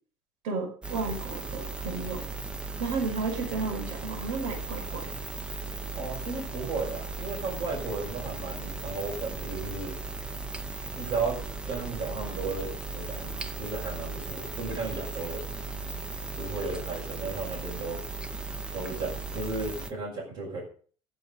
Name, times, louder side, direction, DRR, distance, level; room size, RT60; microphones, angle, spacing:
voice 1, 0.4-2.3 2.8-5.1, right 4 dB, 75° right, 2 dB, 5.5 m, -33 dB
sound 1, 0.8-19.9, right 3 dB, 10° right, 0.6 m, -37 dB
voice 2, 5.9-10.0 10.9-11.4 11.7-15.6 16.3-18.0 18.7-20.6, right 3 dB, 40° right, -4 dB, 5.5 m, -34 dB
15.5 x 7.2 x 5.4 m, 0.42 s
cardioid pair, 180°, 12 cm